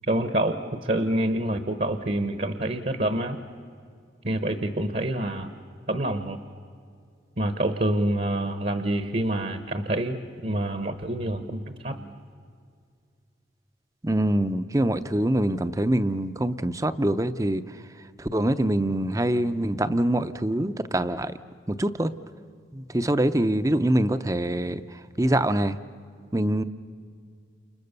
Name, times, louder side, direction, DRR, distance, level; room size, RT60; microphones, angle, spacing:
voice 1, 0.1-3.4 4.2-5.5 5.9-6.4 7.4-12.2, right 1 dB, 45° right, 9 dB, 1.1 m, -27 dB
voice 2, 14.0-17.8 18.2-21.4 21.7-22.1 22.7-25.8 26.3-26.6, right 1 dB, 20° right, 12 dB, 0.7 m, -24 dB
30.0 x 28.5 x 6.8 m, 2.2 s
head